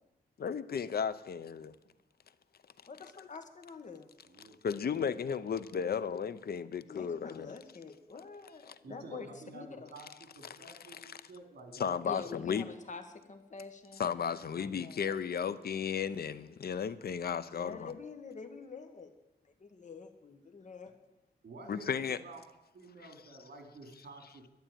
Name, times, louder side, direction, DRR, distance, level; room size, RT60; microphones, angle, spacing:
voice 1, 0.4-1.7 4.6-7.5 10.9-11.1 11.8-12.7 14.0-17.9 21.7-22.2, left 7 dB, 65° left, 14 dB, 0.7 m, -34 dB
voice 2, 2.9-4.1 6.9-9.9 12.0-14.2 14.6-15.2 17.5-19.1 19.4-20.9, left 4 dB, 45° left, 7 dB, 1.6 m, -47 dB
voice 3, 4.2-5.0 5.4-6.0 8.8-12.2 14.5-14.8 21.4-22.4 22.7-24.5, right 2 dB, 75° right, 4 dB, 3.1 m, -51 dB
11.5 x 11.0 x 9.0 m, 0.97 s
wide cardioid pair, 135°, 17 cm